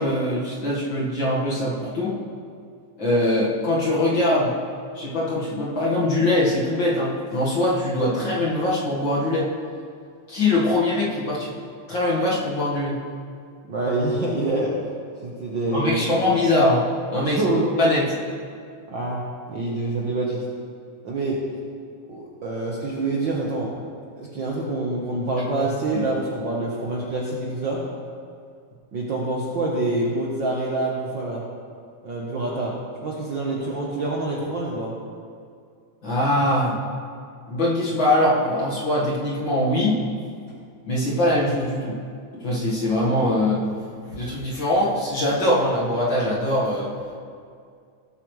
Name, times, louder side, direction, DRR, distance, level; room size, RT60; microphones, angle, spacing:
voice 1, 0.0-2.2 3.0-4.6 4.9-9.5 10.3-11.6 11.9-13.0 15.7-17.4 17.8-18.1 25.9-26.0 36.0-36.8 37.5-40.0 40.8-42.0 42.3-43.7 44.1-46.9, left 1 dB, 45° left, -6 dB, 2.1 m, -22 dB
voice 2, 13.7-14.7 15.2-16.3 17.2-17.9 18.9-19.2 19.5-20.4 21.0-21.4 22.1-23.7 24.2-27.8 28.9-31.4 32.0-32.7 33.0-34.9, right 2 dB, 55° right, -4 dB, 1.5 m, -26 dB
18.0 x 8.4 x 3.2 m, 2.2 s
omnidirectional pair, 3.3 m